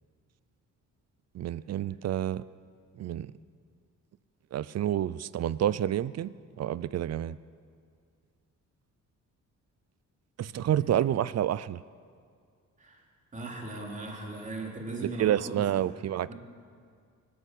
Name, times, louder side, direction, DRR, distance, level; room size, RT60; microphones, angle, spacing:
voice 1, 1.3-2.4 3.0-3.3 4.5-7.4 10.4-11.8 15.0-16.3, right 11 dB, 55° right, 18 dB, 0.5 m, -29 dB
voice 2, 10.4-11.0 12.8-13.0 13.3-16.0 16.3-16.4, right 2 dB, 25° right, -1 dB, 3.6 m, -39 dB
24.5 x 13.0 x 8.4 m, 2.2 s
wide cardioid pair, 175°, 31 cm